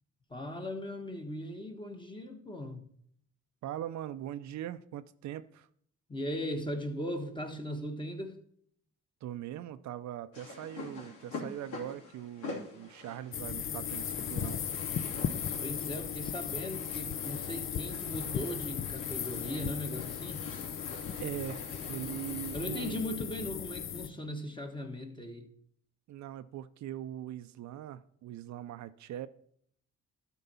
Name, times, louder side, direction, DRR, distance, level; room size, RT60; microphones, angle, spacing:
voice 1, 0.3-2.9 6.1-8.4 15.6-20.5 22.5-25.5, equal, 15° left, 1.5 m, -38 dB
voice 2, 3.6-5.7 9.2-14.6 21.2-23.0 26.1-29.3, right 12 dB, 65° right, 0.5 m, -41 dB
sound 1, 10.3-23.1, left 3 dB, 90° left, 3.0 m, -46 dB
Sizzling in a wok, 13.3-24.1, left 8 dB, 45° left, 0.6 m, -37 dB
12.0 x 4.5 x 5.5 m
cardioid pair, 90°, 30 cm